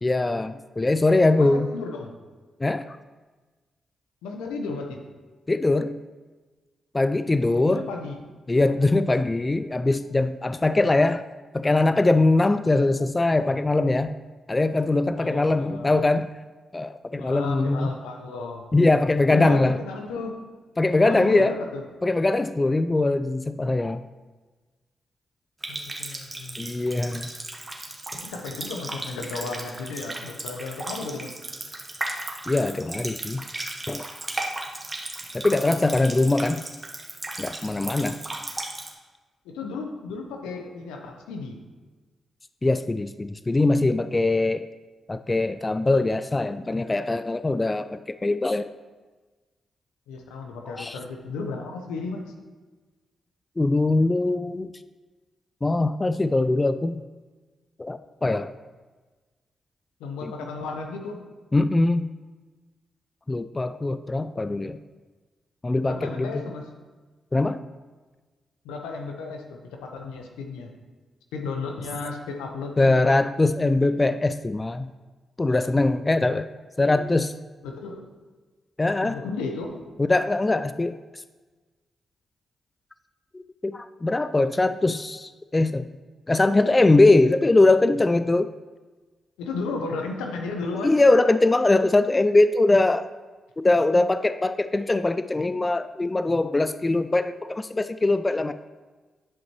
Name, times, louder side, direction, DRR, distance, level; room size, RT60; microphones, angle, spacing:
voice 1, 0.0-1.7 2.6-3.0 5.5-6.0 6.9-7.9 8.5-11.2 11.5-14.1 14.5-16.3 16.7-17.9 18.7-19.8 20.8-21.5 22.0-24.0 26.6-27.3 32.5-33.4 33.9-34.1 35.3-36.6 37.4-38.2 42.6-44.7 45.1-48.7 50.7-51.0 53.6-54.7 55.6-57.0 57.8-58.5 60.2-60.3 61.5-62.0 63.3-64.8 65.6-66.5 67.3-67.6 72.8-74.9 75.4-76.5 76.8-77.3 78.8-79.2 80.0-81.2 83.3-85.9 86.3-88.5 90.8-93.1 93.6-98.5, left 2 dB, 30° left, 12 dB, 0.3 m, -22 dB
voice 2, 1.4-2.1 4.2-5.0 7.6-8.2 15.1-16.0 17.2-18.6 19.3-20.4 20.9-21.8 25.7-26.7 28.1-31.3 39.4-41.6 50.1-52.3 60.0-61.2 65.8-66.7 68.6-70.7 71.3-73.2 77.6-78.1 79.0-79.9 89.4-91.0, left 3 dB, 90° left, 3 dB, 0.8 m, -34 dB
Water tap faucet, 25.6-38.9, right 2 dB, 30° right, 1.2 m, -35 dB
10.5 x 5.3 x 3.0 m, 1.3 s
supercardioid pair, 45°, 0 cm